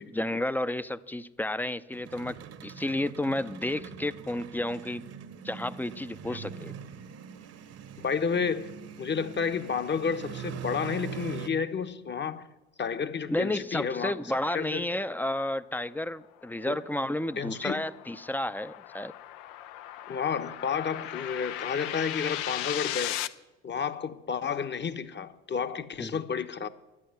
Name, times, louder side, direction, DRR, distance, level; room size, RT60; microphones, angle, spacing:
voice 1, 0.0-2.4 2.6-5.1 5.4-6.7 13.3-19.1 26.0-26.2, left 1 dB, 5° left, 0.6 m, -31 dB
sound 1, 1.9-11.5, right 8 dB, 45° right, 1.1 m, -43 dB
voice 2, 8.0-12.5 12.8-14.1 14.5-14.8 16.7-16.8 17.4-17.8 20.1-23.2 23.6-26.7, left 6 dB, 30° left, 1.1 m, -31 dB
sound 2, 16.4-23.3, left 13 dB, 70° left, 0.7 m, -37 dB
11.0 x 10.0 x 9.4 m
hypercardioid pair, 55°, 34 cm